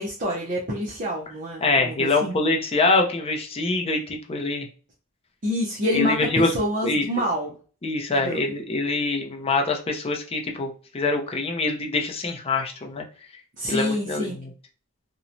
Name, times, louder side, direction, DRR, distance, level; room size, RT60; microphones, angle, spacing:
voice 1, 0.0-2.3 5.4-7.6 8.1-8.5 13.6-14.4, left 1 dB, 35° right, -4 dB, 0.6 m, -27 dB
voice 2, 1.6-4.7 5.9-6.5 6.8-7.0 7.8-13.0 13.7-14.5, left 3 dB, 25° left, 3 dB, 0.5 m, -24 dB
2.9 x 2.1 x 2.5 m, 0.39 s
head